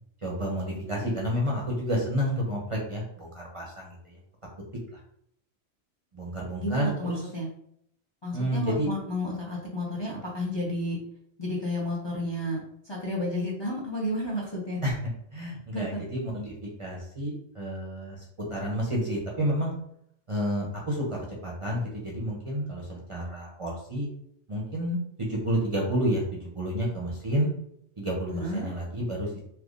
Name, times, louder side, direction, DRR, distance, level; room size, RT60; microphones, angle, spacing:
voice 1, 0.2-4.1 6.1-7.2 8.3-8.9 14.8-14.9 15.3-16.5 16.8-18.2 18.5-19.7 20.3-24.1 24.5-27.5 28.0-29.4, equal, 35° right, -3 dB, 0.6 m, -30 dB
voice 2, 6.6-7.5 8.2-11.0 11.4-12.6 12.8-14.8 15.7-16.0 28.3-28.7, left 1 dB, 30° left, -4 dB, 0.6 m, -31 dB
3.4 x 2.9 x 2.5 m, 0.71 s
omnidirectional pair, 1.1 m